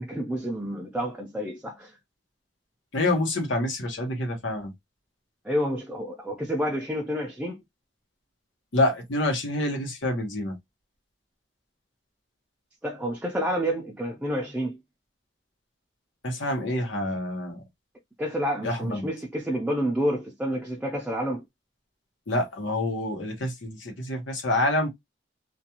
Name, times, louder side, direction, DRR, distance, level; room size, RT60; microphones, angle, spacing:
voice 1, 0.0-2.0 5.4-7.6 12.8-14.8 18.2-21.4, equal, 5° right, 0.4 m, -29 dB
voice 2, 2.9-4.7 8.7-10.5 16.2-17.6 18.6-19.1 22.3-24.9, left 1 dB, 80° left, 1.0 m, -27 dB
2.5 x 2.3 x 2.8 m
head